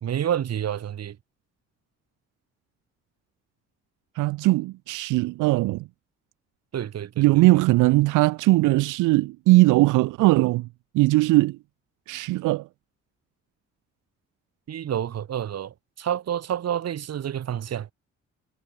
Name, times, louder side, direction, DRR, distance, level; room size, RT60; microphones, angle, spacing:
voice 1, 0.0-1.2 6.7-7.2 14.7-17.9, right 10 dB, 55° right, 1.7 m, -29 dB
voice 2, 4.2-5.8 7.2-10.7 10.9-11.6 12.1-12.7, right 20 dB, 85° right, 0.5 m, -20 dB
cardioid pair, 90°, 30 cm